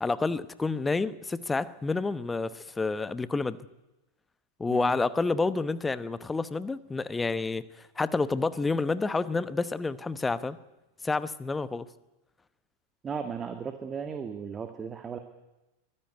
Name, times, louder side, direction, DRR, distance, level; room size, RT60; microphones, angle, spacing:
voice 1, 0.0-3.6 4.6-10.6 11.0-11.8, left 3 dB, 10° left, 16 dB, 1.0 m, -29 dB
voice 2, 13.0-15.2, right 6 dB, 20° right, 7 dB, 1.8 m, -36 dB
24.0 x 15.5 x 9.5 m, 1.0 s
figure-of-eight pair, 90°, 0 cm